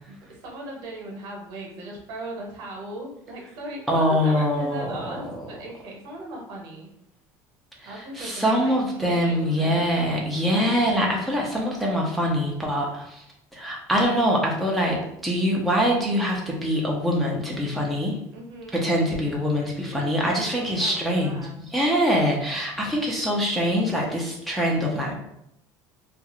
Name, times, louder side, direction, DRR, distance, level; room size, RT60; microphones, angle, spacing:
voice 1, 0.1-6.9 7.8-9.9 18.3-18.8 19.9-21.6, right 1 dB, 65° right, -1 dB, 0.9 m, -38 dB
voice 2, 3.9-5.4 7.8-13.2 13.5-18.2 18.7-21.4 21.7-25.1, equal, ahead, -4 dB, 0.4 m, -24 dB
2.4 x 2.3 x 2.9 m, 0.76 s
cardioid pair, 145°, 8 cm